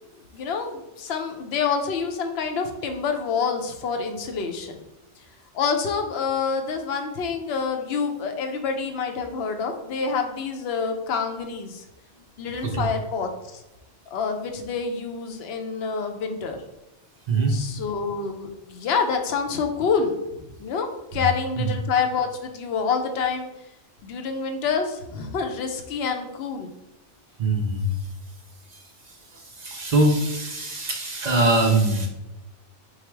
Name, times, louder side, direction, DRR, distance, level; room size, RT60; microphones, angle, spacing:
voice 1, 0.3-4.8 5.5-11.8 12.4-13.6 14.1-16.6 17.5-23.5 24.0-26.7, left 5 dB, 65° left, 5 dB, 0.8 m, -27 dB
voice 2, 17.3-17.6 21.6-21.7 27.4-27.9 28.7-28.8 29.3-32.1, right 2 dB, 50° right, 0 dB, 0.5 m, -22 dB
4.8 x 2.0 x 4.5 m, 1.0 s
omnidirectional pair, 1.2 m